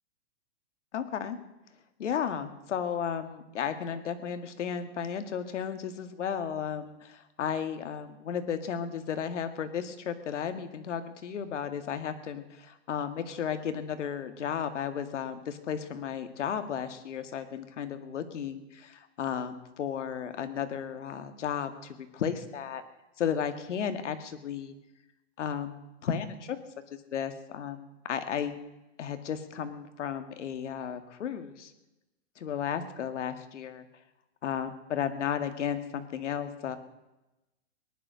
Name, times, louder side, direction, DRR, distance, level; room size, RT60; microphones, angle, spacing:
voice 1, 0.9-1.4 2.0-22.8 23.2-24.7 25.4-26.6 27.1-28.6 29.0-31.7 32.4-33.9 34.4-36.8, left 8 dB, 85° left, 9 dB, 2.1 m, -34 dB
19.0 x 11.5 x 6.3 m, 0.98 s
hypercardioid pair, 170°, 35 cm